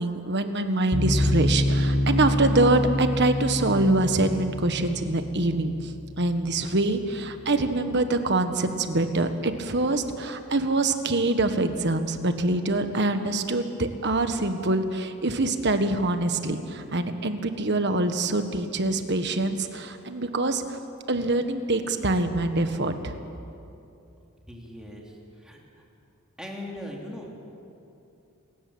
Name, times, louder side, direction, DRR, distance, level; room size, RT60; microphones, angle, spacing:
voice 1, 0.0-20.8 21.1-23.2, right 2 dB, 50° right, 8 dB, 1.4 m, -25 dB
sound 1, 0.9-8.0, left 1 dB, 35° left, 1.7 m, -27 dB
voice 2, 24.5-25.1 25.4-25.6 26.4-27.3, left 1 dB, 5° right, -2 dB, 3.2 m, -39 dB
28.0 x 13.5 x 8.9 m, 2.7 s
head